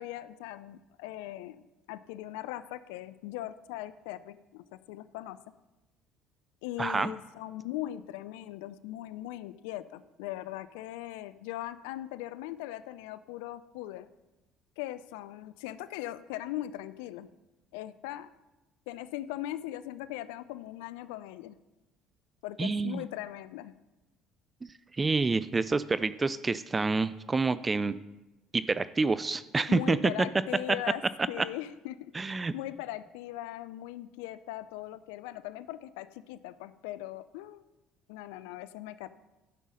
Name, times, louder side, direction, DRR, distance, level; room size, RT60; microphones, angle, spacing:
voice 1, 0.0-1.6 1.9-5.4 6.6-14.1 14.8-17.3 17.7-18.3 18.9-21.6 22.4-23.7 29.7-37.6 38.1-39.1, left 14 dB, 80° left, 14 dB, 0.3 m, -40 dB
voice 2, 6.8-7.1 22.6-23.0 25.0-28.0 28.5-30.0 31.4-31.5 32.1-32.5, right 3 dB, 25° right, 16 dB, 0.4 m, -28 dB
11.0 x 5.5 x 6.3 m, 1.0 s
hypercardioid pair, 70°, 0 cm